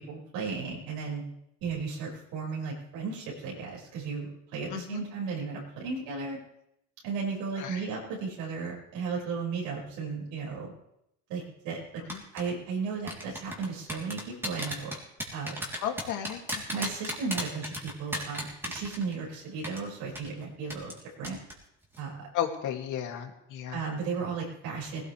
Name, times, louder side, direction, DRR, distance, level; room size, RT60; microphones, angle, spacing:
voice 1, 0.1-1.2 1.6-6.4 7.0-10.7 11.3-11.8 12.3-14.9 15.3-15.6 16.7-20.9 21.2-21.4 22.0-22.3 23.7-25.0, right 5 dB, 85° right, -4 dB, 5.9 m, -35 dB
voice 2, 4.7-5.0 7.6-7.8 12.1-12.2 15.8-16.4 16.7-17.0 22.3-23.8, left 9 dB, 60° left, 3 dB, 2.6 m, -34 dB
sound 1, 12.1-12.4 13.1-19.3 19.6-19.8 20.2-20.3 20.7-21.0 21.2-21.5 21.8-22.0, equal, 5° right, 3.4 m, -34 dB
19.0 x 17.5 x 3.4 m, 0.81 s
cardioid pair, 145°, 35 cm